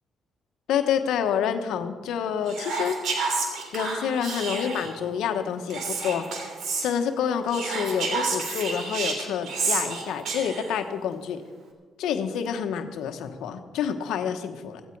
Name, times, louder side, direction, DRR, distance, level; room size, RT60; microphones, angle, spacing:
voice 1, 0.7-3.0 3.7-6.5 6.8-11.4 12.0-14.8, left 8 dB, 85° left, 7 dB, 1.2 m, -28 dB
Whispering, 2.5-5.0 5.7-6.9 7.5-10.8, right 4 dB, 75° right, 3.0 m, -30 dB
15.5 x 15.5 x 4.7 m, 1.4 s
cardioid pair, 90°, 0 cm